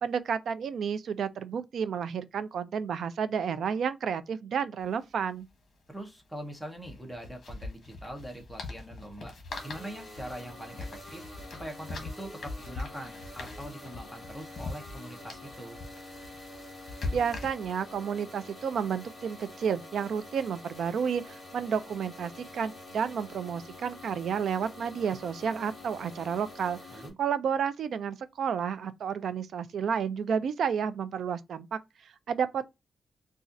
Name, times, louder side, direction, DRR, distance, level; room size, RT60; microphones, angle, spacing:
voice 1, 0.0-5.5 17.1-32.6, right 7 dB, 75° right, 0.4 m, -31 dB
sound 1, 4.8-4.9 5.1-5.3 6.7-17.9, left 3 dB, 50° left, 1.1 m, -41 dB
voice 2, 5.9-9.3 9.6-15.8 26.9-27.1, right 1 dB, ahead, 0.7 m, -43 dB
sound 2, 9.5-27.1, left 1 dB, 20° left, 1.1 m, -47 dB
4.1 x 2.4 x 2.4 m
wide cardioid pair, 150°, 0 cm